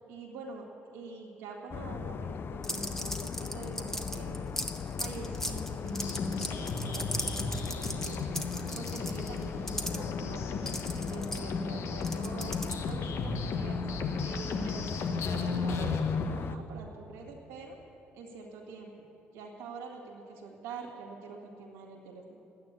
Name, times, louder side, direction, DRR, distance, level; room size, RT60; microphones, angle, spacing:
voice 1, 0.1-0.7 0.9-4.5 5.0-8.3 8.7-10.5 11.1-12.6 12.9-13.8 14.2-17.8 18.1-18.9 19.3-22.4, right 4 dB, 85° right, -2 dB, 1.9 m, -45 dB
sound 1, 1.7-16.6, left 6 dB, 50° left, 0.6 m, -38 dB
sound 2, 2.6-10.0 10.6-13.0, left 1 dB, 10° left, 1.5 m, -37 dB
sound 3, 5.8-16.2, left 4 dB, 65° left, 1.3 m, -35 dB
11.5 x 9.3 x 9.8 m, 2.9 s
supercardioid pair, 65°, 5 cm